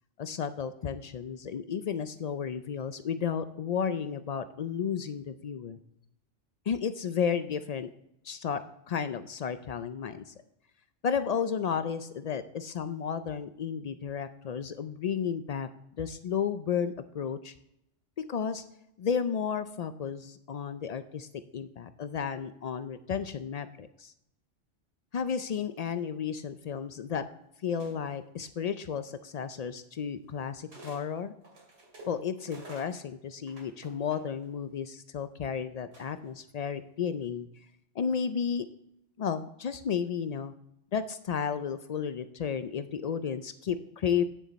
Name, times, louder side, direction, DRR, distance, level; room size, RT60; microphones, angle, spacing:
voice 1, 0.2-5.8 6.7-7.9 8.2-8.6 8.9-10.3 11.0-15.7 16.0-17.5 18.3-18.6 19.0-21.3 21.5-24.1 25.1-27.2 27.6-31.3 32.0-37.5 38.0-38.7 39.2-40.5 40.9-44.2, left 7 dB, 90° left, 11 dB, 0.3 m, -33 dB
sound 1, 27.8-28.3 29.4-29.5 30.7-31.0 31.4-34.5 35.9-36.4, right 2 dB, 80° right, 2.6 m, -51 dB
9.3 x 7.4 x 4.1 m, 0.80 s
omnidirectional pair, 1.3 m